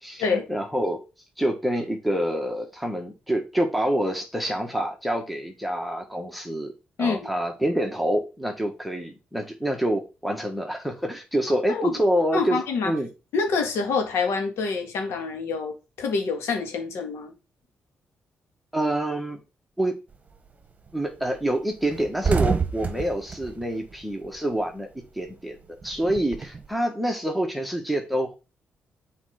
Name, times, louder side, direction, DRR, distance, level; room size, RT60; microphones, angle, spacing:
voice 1, 0.0-1.0 1.4-6.7 7.0-12.6 12.8-13.1 18.7-19.4 19.8-20.0 20.9-24.9 25.1-28.4, right 1 dB, ahead, 1.4 m, -27 dB
voice 2, 12.3-12.9 13.3-15.7 16.0-17.3, left 4 dB, 85° left, 2.1 m, -26 dB
sound 1, 20.1-20.5 20.9-21.0 21.3-21.4 21.7-24.7 25.0-26.7, right 5 dB, 30° right, 1.3 m, -28 dB
7.2 x 4.3 x 5.0 m
cardioid pair, 95°, 4 cm